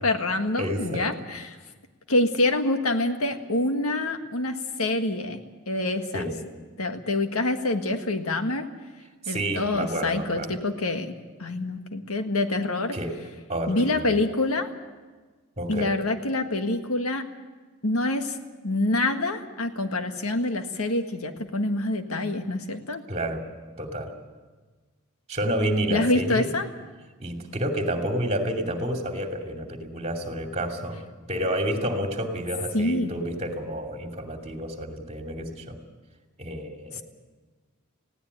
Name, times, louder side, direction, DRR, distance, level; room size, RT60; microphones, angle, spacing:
voice 1, 0.0-1.6 2.1-5.4 5.7-6.3 6.8-8.7 9.3-11.1 11.4-13.0 13.7-14.7 15.7-17.3 17.8-18.4 18.6-23.0 25.9-26.7 32.7-33.1, left 2 dB, 90° left, 7 dB, 1.7 m, -26 dB
voice 2, 0.6-1.1 6.1-6.4 9.2-10.6 12.9-13.2 13.5-14.2 15.6-15.9 23.1-23.4 23.8-24.1 25.3-26.5 27.2-31.0 31.3-35.8 36.4-37.0, right 1 dB, 30° right, 3 dB, 2.8 m, -29 dB
20.0 x 16.5 x 9.4 m, 1.3 s
head